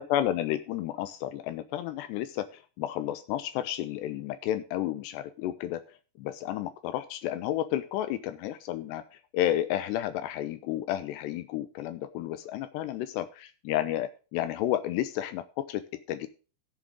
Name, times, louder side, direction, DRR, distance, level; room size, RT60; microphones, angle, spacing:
voice 1, 0.0-16.3, left 12 dB, 80° left, 11 dB, 2.7 m, -32 dB
16.5 x 7.6 x 3.7 m, 0.36 s
omnidirectional pair, 5.0 m